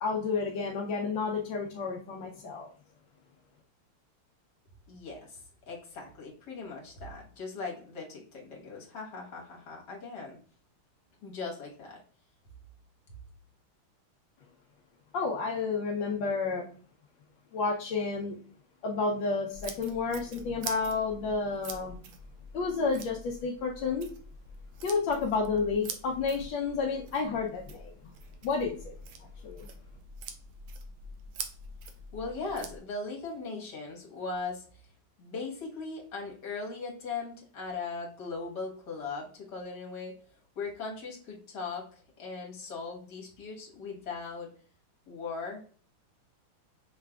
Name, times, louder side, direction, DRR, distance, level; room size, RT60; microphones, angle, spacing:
voice 1, 0.0-2.7 15.1-16.6 17.5-18.4 18.8-22.0 22.5-24.1 24.8-27.9 28.4-28.9 29.4-29.7, left 4 dB, 70° left, -1 dB, 1.2 m, -30 dB
voice 2, 4.9-10.4 11.2-12.0 32.1-34.6 35.2-40.2 40.6-41.9 42.2-44.5 45.1-45.8, left 4 dB, 55° left, -2 dB, 1.8 m, -39 dB
sound 1, 19.5-32.8, right 3 dB, 70° right, 1.3 m, -45 dB
5.8 x 3.2 x 2.3 m, 0.44 s
omnidirectional pair, 2.4 m